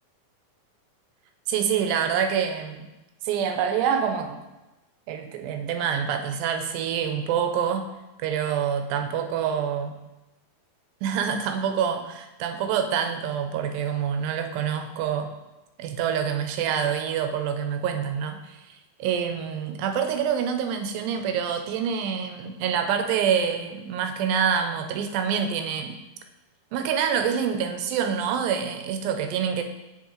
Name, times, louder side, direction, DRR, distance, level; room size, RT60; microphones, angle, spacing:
voice 1, 1.5-2.9 3.2-4.4 5.1-7.9 8.2-10.0 11.0-15.3 15.8-26.0 26.7-29.6, right 7 dB, 90° right, 7 dB, 2.4 m, -26 dB
7.1 x 5.3 x 3.0 m, 1.0 s
omnidirectional pair, 4.0 m